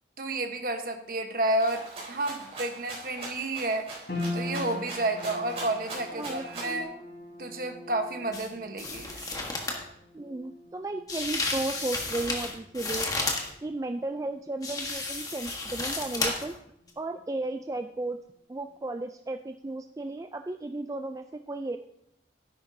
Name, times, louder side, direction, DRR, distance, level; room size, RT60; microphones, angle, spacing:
voice 1, 0.2-3.9 4.3-6.9 7.4-9.2, right 2 dB, 50° right, 5 dB, 1.2 m, -31 dB
Rattle (instrument), 1.6-6.8, right 2 dB, 35° right, 4.0 m, -41 dB
sound 1, 4.1-16.5 16.7-17.7 18.1-18.2, left 2 dB, 65° left, 4.1 m, -42 dB
voice 2, 6.1-7.0 10.1-13.1 13.6-16.6 17.0-18.2 18.5-21.8, right 2 dB, 20° right, 6 dB, 0.3 m, -34 dB
sound 2, 8.3-8.5 8.8-9.8 11.1-13.5 14.6-16.6 16.9-17.0, left 3 dB, 20° left, 1.3 m, -32 dB
12.5 x 10.5 x 2.7 m, 0.77 s
head